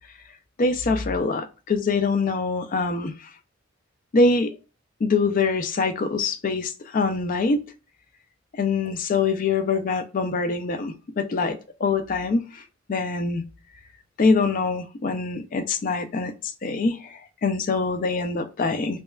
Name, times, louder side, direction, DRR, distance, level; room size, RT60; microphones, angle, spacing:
voice 1, 0.6-3.1 4.1-4.5 5.0-7.6 8.5-12.5 12.9-13.4 14.2-16.3 16.6-19.0, left 4 dB, 40° left, 0.4 m, -24 dB
5.3 x 2.2 x 2.3 m
head